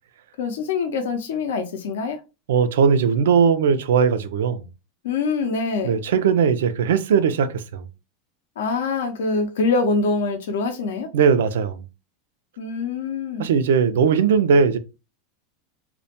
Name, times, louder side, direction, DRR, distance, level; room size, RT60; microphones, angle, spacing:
voice 1, 0.4-2.2 5.0-6.0 8.6-11.1 12.6-13.5, left 4 dB, 80° left, 0.5 m, -24 dB
voice 2, 2.5-4.6 5.8-7.9 11.1-11.8 13.4-14.8, right 6 dB, 85° right, 0.3 m, -19 dB
2.1 x 2.1 x 2.8 m
supercardioid pair, 120°, 0 cm